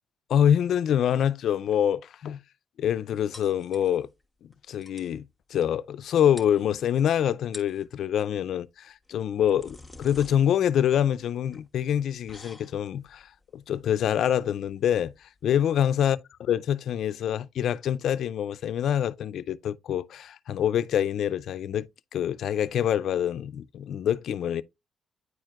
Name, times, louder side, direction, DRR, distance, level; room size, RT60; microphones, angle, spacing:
voice 1, 0.3-2.4 2.8-4.1 4.4-16.2 16.5-24.6, left 9 dB, 75° left, 0.4 m, -26 dB
sound 1, 3.3-4.2 4.5-4.6 4.8-5.2 6.0-6.1 6.4-7.0 7.4-7.9 9.0-15.7, left 2 dB, ahead, 1.2 m, -49 dB
9.5 x 4.5 x 2.4 m
cardioid pair, 105°, 0 cm